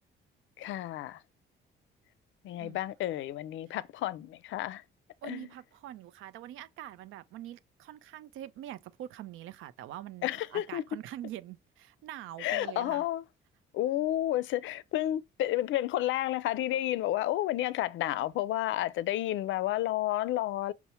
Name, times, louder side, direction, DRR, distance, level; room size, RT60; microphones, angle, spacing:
voice 1, 0.6-1.2 2.4-4.8 5.2-5.5 10.2-10.8 12.4-13.2 13.7-20.7, left 14 dB, 75° left, 0.4 m, -31 dB
voice 2, 5.2-13.1, right 12 dB, 85° right, 0.5 m, -44 dB
5.5 x 2.1 x 4.2 m
cardioid pair, 90°, 20 cm